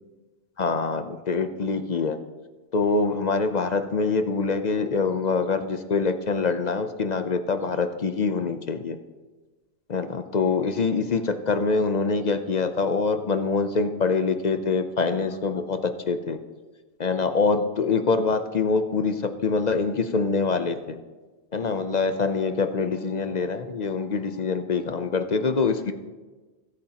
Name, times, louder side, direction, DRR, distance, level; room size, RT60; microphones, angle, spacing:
voice 1, 0.6-2.2 2.7-9.0 9.9-16.4 17.0-21.0 21.5-25.9, left 4 dB, 45° left, 9 dB, 0.7 m, -25 dB
20.0 x 8.6 x 2.9 m, 1.3 s
omnidirectional pair, 1.2 m